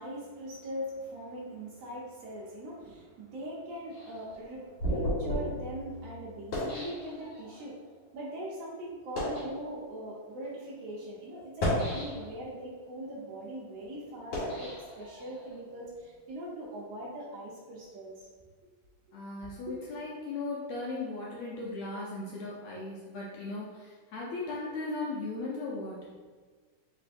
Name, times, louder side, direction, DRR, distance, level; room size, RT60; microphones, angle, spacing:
voice 1, 0.0-7.8 8.1-18.3 19.7-19.8, right 1 dB, 90° right, -5 dB, 1.3 m, -41 dB
sound 1, 3.9-7.6 8.3-8.5 9.0-9.5 10.3-10.5 11.4-12.5 13.0-15.5, equal, 55° left, 2.4 m, -34 dB
voice 2, 19.1-26.1, left 3 dB, 80° left, -5 dB, 1.6 m, -37 dB
4.8 x 3.5 x 2.5 m, 1.5 s
omnidirectional pair, 3.8 m